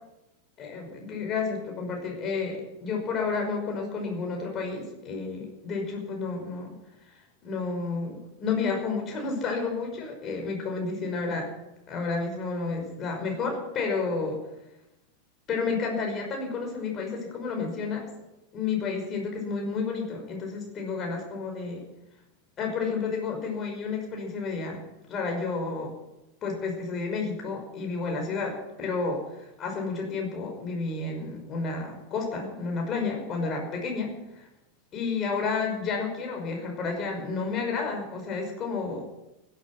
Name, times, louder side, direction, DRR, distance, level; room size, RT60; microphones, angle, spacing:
voice 1, 0.6-6.7 7.4-11.5 11.9-14.4 15.5-18.0 18.5-21.8 22.6-25.9 26.4-29.2 29.6-34.5 34.9-39.0, left 4 dB, 30° left, 2 dB, 5.6 m, -31 dB
16.0 x 12.5 x 6.1 m, 0.93 s
figure-of-eight pair, 90°, 0 cm